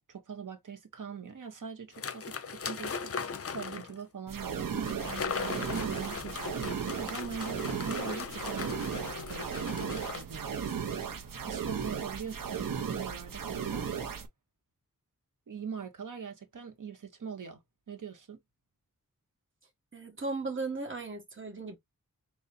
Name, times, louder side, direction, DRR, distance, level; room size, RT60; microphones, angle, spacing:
voice 1, 0.0-13.9 15.5-17.6 17.9-18.4, right 6 dB, 70° right, 1.2 m, -43 dB
sound 1, 1.9-4.0 4.8-10.2, left 5 dB, 45° left, 0.5 m, -38 dB
sound 2, 4.3-14.3, right 7 dB, 85° right, 0.8 m, -36 dB
voice 2, 19.9-21.8, right 3 dB, 40° right, 1.5 m, -36 dB
4.0 x 2.4 x 3.9 m
wide cardioid pair, 105°, 32 cm